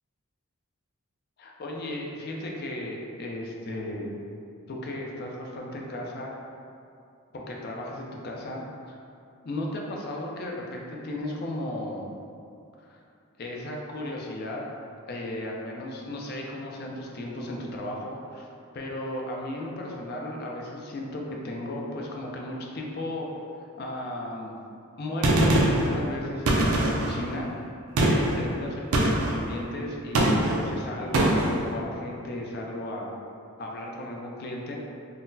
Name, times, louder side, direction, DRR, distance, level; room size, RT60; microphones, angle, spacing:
voice 1, 1.4-4.1 4.7-6.4 7.3-8.6 8.9-9.0 9.4-12.1 12.8-13.0 13.4-14.6 15.1-23.3 23.8-24.6 25.0-27.5 28.0-33.1 33.6-34.8, left 1 dB, 45° left, -1 dB, 0.4 m, -35 dB
Gunshot gunfire, 25.2-25.9 26.5-27.2 28.0-28.4 28.9-29.4 30.1-30.6 31.1-31.5, right 1 dB, 85° right, 0.4 m, -22 dB
3.8 x 2.1 x 2.6 m, 2.5 s
head